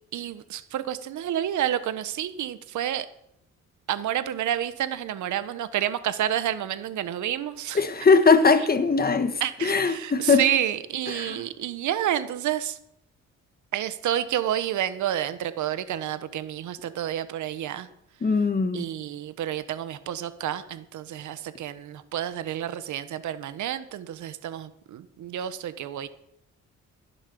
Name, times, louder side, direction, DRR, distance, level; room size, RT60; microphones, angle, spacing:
voice 1, 0.1-3.1 3.9-7.8 9.4-12.8 13.7-17.9 18.7-26.1, right 11 dB, 75° right, 1.1 m, -29 dB
voice 2, 7.7-10.4 11.1-11.4 18.2-18.9, left 4 dB, 30° left, 1.5 m, -21 dB
16.0 x 7.5 x 6.9 m
cardioid pair, 90°, 30 cm